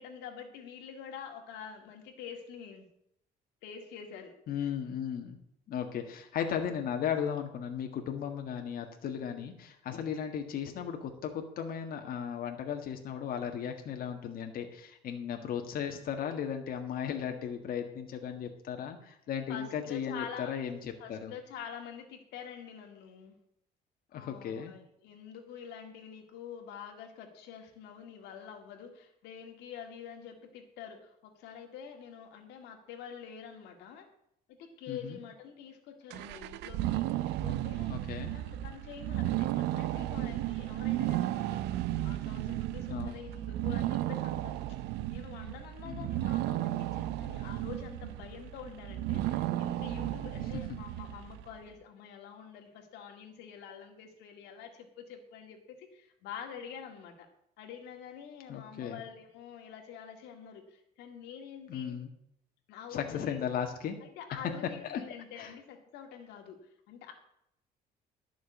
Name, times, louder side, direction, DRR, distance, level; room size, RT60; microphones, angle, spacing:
voice 1, 0.0-2.9 3.6-4.7 19.5-20.5 21.0-23.4 24.1-34.1 34.5-41.7 42.0-44.6 45.1-57.3 57.6-62.0 62.7-63.4 64.0-66.6 66.9-67.1, left 7 dB, 85° left, 3 dB, 2.1 m, -46 dB
voice 2, 4.5-5.4 5.7-21.3 24.1-24.7 34.9-35.2 37.4-37.5 37.9-38.3 42.9-43.2 45.8-46.3 58.5-59.0 61.7-62.1 62.9-64.0 64.8-65.0 65.4-65.5, left 8 dB, 60° left, 4 dB, 1.7 m, -36 dB
sound 1, 36.1-51.5, right 15 dB, 90° right, 0.6 m, -34 dB
12.0 x 6.2 x 8.4 m, 0.76 s
cardioid pair, 110°, 17 cm